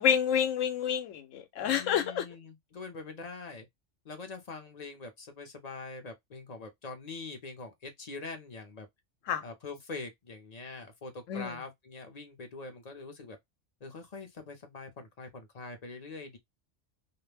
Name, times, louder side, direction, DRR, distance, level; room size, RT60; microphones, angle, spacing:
voice 1, 0.0-2.2 9.3-9.4 11.3-11.5, left 8 dB, 80° left, 1.0 m, -28 dB
voice 2, 1.6-3.7 4.0-8.9 9.4-13.4 13.8-16.4, left 3 dB, 45° left, 0.6 m, -43 dB
2.4 x 2.1 x 3.1 m
omnidirectional pair, 1.3 m